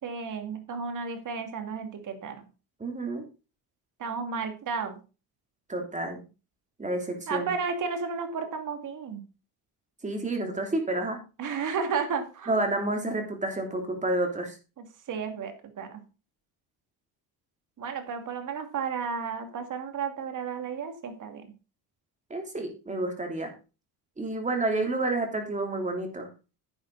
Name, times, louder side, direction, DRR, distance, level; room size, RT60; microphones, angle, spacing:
voice 1, 0.0-2.4 4.0-5.0 7.3-9.2 11.4-12.6 15.1-16.0 17.8-21.4, right 5 dB, 55° right, 7 dB, 2.5 m, -33 dB
voice 2, 2.8-3.2 5.7-6.2 6.8-7.5 10.0-11.2 12.5-14.6 22.3-23.5 24.2-26.3, right 2 dB, 20° right, 3 dB, 3.2 m, -29 dB
10.5 x 8.5 x 4.0 m, 0.32 s
cardioid pair, 115°, 37 cm